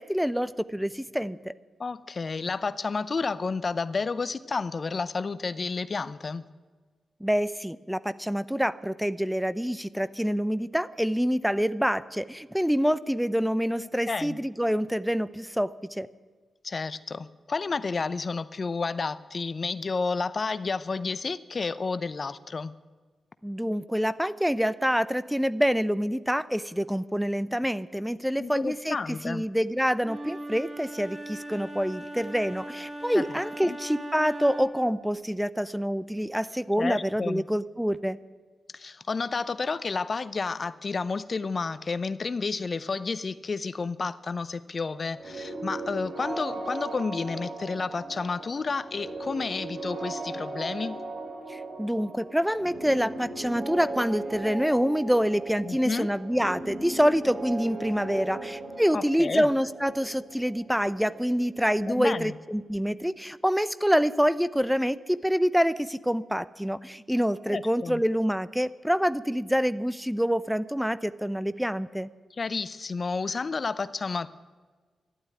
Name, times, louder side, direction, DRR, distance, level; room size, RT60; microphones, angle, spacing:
voice 1, 0.0-1.5 7.2-16.1 23.4-29.0 29.2-38.2 51.5-72.1, equal, 5° right, 16 dB, 0.6 m, -26 dB
voice 2, 1.8-6.4 13.8-14.4 16.6-22.7 28.4-29.5 33.1-33.4 33.6-33.8 36.8-37.5 38.7-51.0 55.6-56.1 58.9-59.5 61.8-62.3 67.5-68.0 72.4-74.3, left 4 dB, 50° left, 16 dB, 0.6 m, -31 dB
Wind instrument woodwind instrument, 30.0-34.9, right 1 dB, 30° right, 2.0 m, -39 dB
sound 1, 45.1-62.8, right 2 dB, 65° right, 6.4 m, -38 dB
12.0 x 11.0 x 9.4 m, 1.4 s
cardioid pair, 55°, 0 cm